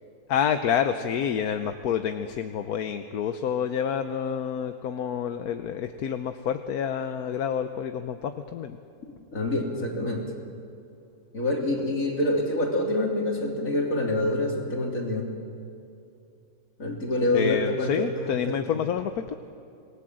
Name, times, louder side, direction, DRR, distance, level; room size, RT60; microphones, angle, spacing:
voice 1, 0.3-8.8 17.3-19.4, left 8 dB, 80° left, 8 dB, 1.3 m, -28 dB
voice 2, 9.3-10.2 11.3-15.3 16.8-18.5, left 1 dB, 60° left, 0 dB, 3.8 m, -26 dB
27.0 x 20.0 x 7.7 m, 2.6 s
omnidirectional pair, 1.6 m